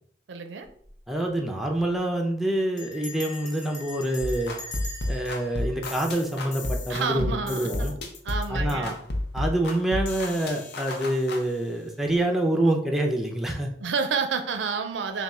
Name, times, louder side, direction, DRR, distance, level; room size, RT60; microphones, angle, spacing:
voice 1, 0.3-0.7 6.9-8.0 8.2-9.0 13.8-15.2, right 5 dB, 80° right, 8 dB, 0.4 m, -29 dB
Bell, 0.6-1.0 1.3-1.4 1.6-2.0 2.8-6.9, left 2 dB, 25° left, 0.8 m, -42 dB
voice 2, 1.1-4.5 5.1-7.9 8.5-8.9 9.3-13.7, right 1 dB, ahead, 1 dB, 0.5 m, -26 dB
sound 1, 4.2-11.4, left 1 dB, 60° left, 0.7 m, -31 dB
3.5 x 2.3 x 4.2 m, 0.63 s
head